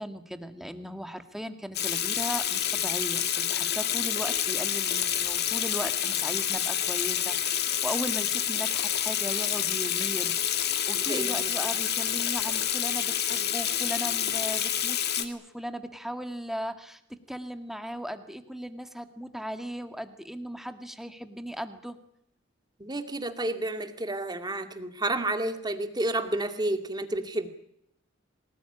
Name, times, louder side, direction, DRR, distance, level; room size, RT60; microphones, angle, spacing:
voice 1, 0.0-22.0, equal, ahead, 8 dB, 1.9 m, -37 dB
Water tap faucet / Sink (filling or washing), 1.7-15.2, left 10 dB, 55° left, 2.4 m, -28 dB
voice 2, 11.1-11.5 22.8-27.5, right 1 dB, 20° right, 7 dB, 2.3 m, -30 dB
24.5 x 19.5 x 9.9 m, 0.73 s
head